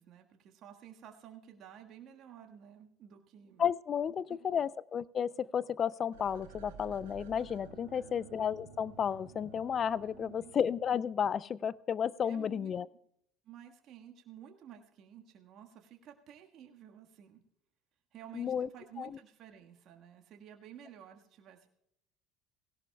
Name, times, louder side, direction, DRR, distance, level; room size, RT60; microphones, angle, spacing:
voice 1, 0.0-3.6 4.3-4.4 7.9-8.3 10.0-10.5 12.2-12.7 13.4-17.4 18.1-21.7, right 9 dB, 55° right, 3 dB, 1.5 m, -53 dB
voice 2, 3.6-12.9 18.3-18.7 19.0-19.1, left 8 dB, 40° left, 21 dB, 0.4 m, -32 dB
sound 1, 6.1-11.3 11.7-11.8, right 6 dB, 80° right, 1.3 m, -53 dB
18.0 x 17.0 x 2.3 m, 0.75 s
hypercardioid pair, 70°, 0 cm